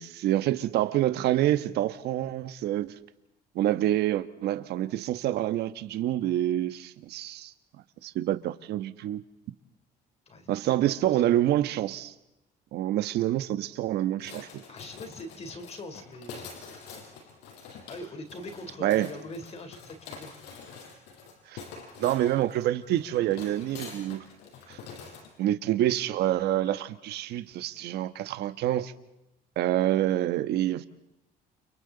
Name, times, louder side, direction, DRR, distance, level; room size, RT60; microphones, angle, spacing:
voice 1, 0.0-3.0 3.5-7.5 8.0-9.2 10.5-12.1 12.7-14.5 18.8-19.1 21.5-21.6 22.0-24.2 24.7-24.8 25.4-28.9 29.6-30.9, right 13 dB, 75° right, 1.2 m, -27 dB
voice 2, 10.8-11.3 14.6-16.5 17.8-20.4, left 2 dB, 40° left, 3.7 m, -42 dB
sound 1, 14.2-25.3, left 5 dB, 85° left, 6.2 m, -46 dB
30.0 x 29.5 x 4.0 m
cardioid pair, 110°, 17 cm